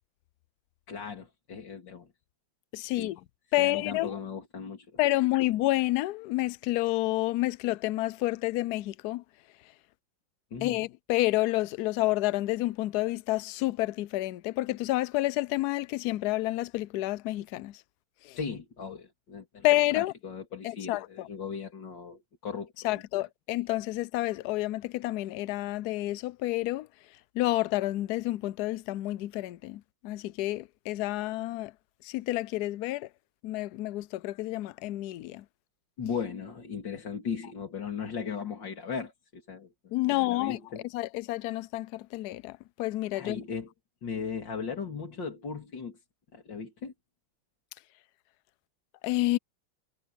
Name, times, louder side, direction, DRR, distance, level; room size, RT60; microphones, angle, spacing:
voice 1, 0.9-2.1 3.0-3.1 3.6-4.9 10.5-10.8 18.4-19.7 19.9-23.0 36.0-39.7 40.1-40.8 43.1-43.7 44.0-46.0 46.3-46.9, left 6 dB, 60° left, 3.4 m, -37 dB
voice 2, 2.7-3.2 3.5-4.2 5.0-9.2 10.6-17.8 18.2-18.4 19.6-20.1 20.6-21.3 22.8-26.9 27.3-31.7 32.0-33.1 33.4-35.4 39.9-43.4 49.0-49.4, left 17 dB, 85° left, 0.8 m, -29 dB
omnidirectional pair, 2.3 m